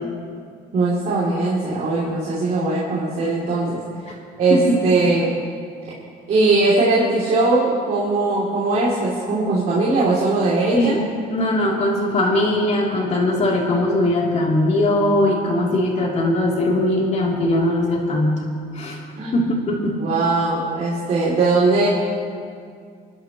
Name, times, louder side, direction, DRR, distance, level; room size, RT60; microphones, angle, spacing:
voice 1, 0.7-3.8 4.4-5.3 6.3-11.0 19.2-19.3 20.0-21.9, right 3 dB, 55° right, -7 dB, 3.0 m, -20 dB
voice 2, 4.5-5.0 10.7-11.0 11.3-18.3 18.7-19.0 19.3-19.9, left 1 dB, 40° left, -3 dB, 3.2 m, -20 dB
27.5 x 11.5 x 3.1 m, 2.2 s
cardioid pair, 110°, 17 cm